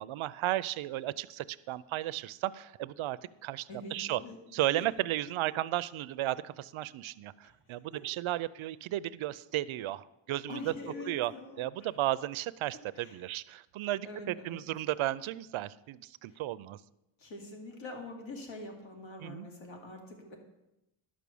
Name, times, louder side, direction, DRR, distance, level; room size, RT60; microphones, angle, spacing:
voice 1, 0.0-4.2 4.5-10.7 11.1-11.3 11.6-16.8 19.2-19.5, right 14 dB, 85° right, 18 dB, 0.6 m, -34 dB
voice 2, 3.7-4.4 4.7-4.9 7.4-7.5 10.5-11.9 12.9-13.2 14.0-14.6 16.3-16.4 17.2-20.4, left 2 dB, 70° left, 2 dB, 2.6 m, -44 dB
11.5 x 6.2 x 6.9 m, 0.89 s
wide cardioid pair, 125°, 47 cm